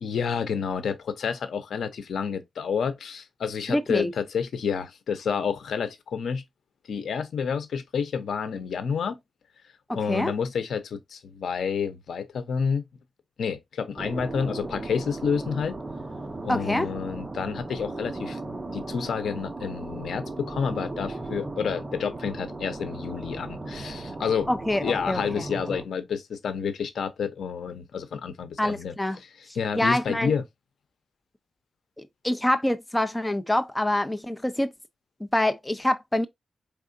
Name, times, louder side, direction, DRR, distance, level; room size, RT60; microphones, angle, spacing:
voice 1, 0.0-6.4 6.9-9.2 9.9-12.8 13.4-15.8 16.4-18.4 18.7-24.5 24.8-29.3 29.6-30.4, left 6 dB, 85° left, 0.7 m, -29 dB
voice 2, 3.7-4.1 10.1-10.3 16.5-16.9 24.5-25.4 28.6-29.2 29.5-30.3 32.2-34.7 35.2-36.3, left 1 dB, 10° left, 0.5 m, -26 dB
sound 1, 14.0-25.8, right 2 dB, 20° right, 0.8 m, -36 dB
4.7 x 3.6 x 2.5 m
wide cardioid pair, 115°, 0 cm